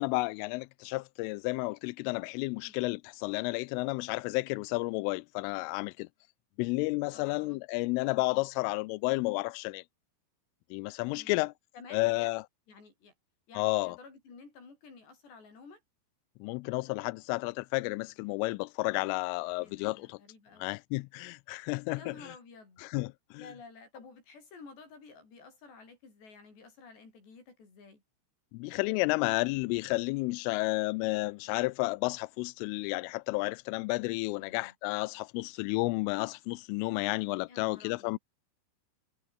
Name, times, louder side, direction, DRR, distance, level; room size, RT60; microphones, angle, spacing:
voice 1, 0.0-6.1 6.6-9.8 10.7-11.5 11.9-12.4 13.5-14.0 16.4-20.2 20.6-22.3 22.8-23.5 28.5-38.2, left 24 dB, 85° left, 3.1 m, -32 dB
voice 2, 7.1-7.6 8.5-8.7 11.1-11.5 11.7-12.3 12.7-13.1 13.5-15.8 19.6-20.7 21.9-22.8 23.4-28.0 34.4-34.7 37.4-38.1, left 4 dB, 60° left, 9.8 m, -52 dB
omnidirectional pair, 5.7 m